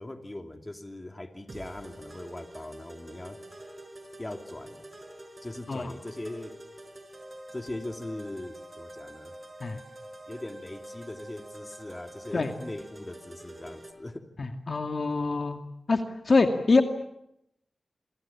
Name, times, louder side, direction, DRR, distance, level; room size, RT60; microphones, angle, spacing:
voice 1, 0.0-3.4 4.2-4.8 5.4-6.6 7.5-9.3 10.3-14.3, left 1 dB, 25° left, 6 dB, 2.9 m, -40 dB
sound 1, 1.5-13.9, right 1 dB, 40° right, 6.2 m, -46 dB
voice 2, 14.4-15.6 15.9-16.8, left 3 dB, 55° left, 6 dB, 2.3 m, -25 dB
28.5 x 24.5 x 7.3 m, 0.78 s
wide cardioid pair, 75°, 0 cm